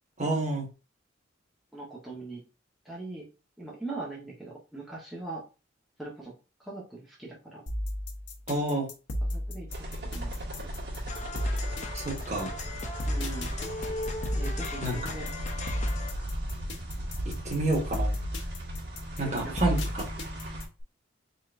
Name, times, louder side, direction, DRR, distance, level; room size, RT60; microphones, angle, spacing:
voice 1, 0.2-0.7 8.5-8.9 11.9-12.5 14.8-15.0 17.2-18.1 19.2-20.0, right 2 dB, 35° right, -1 dB, 1.6 m, -29 dB
voice 2, 1.7-2.4 2.8-3.3 3.6-5.4 6.0-6.3 6.6-7.6 9.2-10.3 10.6-10.7 13.1-13.5 14.4-15.3 19.2-19.7, right 2 dB, ahead, -6 dB, 1.1 m, -41 dB
sound 1, 7.7-20.8, equal, 70° left, 0.9 m, -33 dB
sound 2, 9.7-20.7, equal, 60° right, 1.7 m, -37 dB
sound 3, 11.1-16.3, left 3 dB, 40° left, 0.6 m, -39 dB
4.0 x 4.0 x 2.6 m, 0.31 s
head